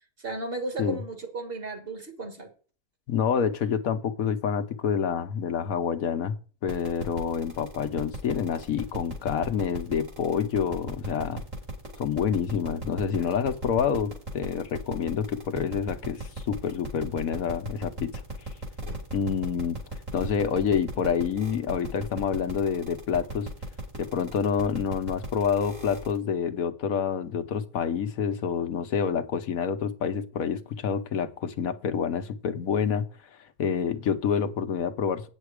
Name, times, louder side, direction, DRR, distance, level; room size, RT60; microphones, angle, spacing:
voice 1, 0.2-2.5, right 3 dB, 40° right, 5 dB, 2.0 m, -34 dB
voice 2, 3.1-6.3 6.6-11.4 12.0-18.2 19.1-19.8 20.1-23.5 24.0-33.1 33.6-35.3, left 7 dB, 75° left, 8 dB, 1.3 m, -27 dB
sound 1, 6.7-26.2, right 2 dB, 60° right, 4.1 m, -37 dB
9.2 x 7.6 x 4.8 m, 0.38 s
omnidirectional pair, 1.5 m